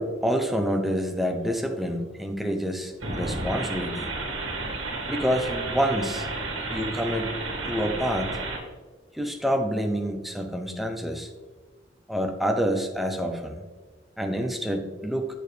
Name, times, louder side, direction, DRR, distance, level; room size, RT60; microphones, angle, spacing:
voice 1, 0.0-4.1 5.1-6.3 6.7-7.3 7.6-8.4 9.1-11.3 12.1-13.6 14.2-15.3, equal, ahead, 3 dB, 0.7 m, -27 dB
sound 1, 3.0-8.6, right 2 dB, 80° right, 1.8 m, -32 dB
8.2 x 6.8 x 3.3 m, 1.3 s
head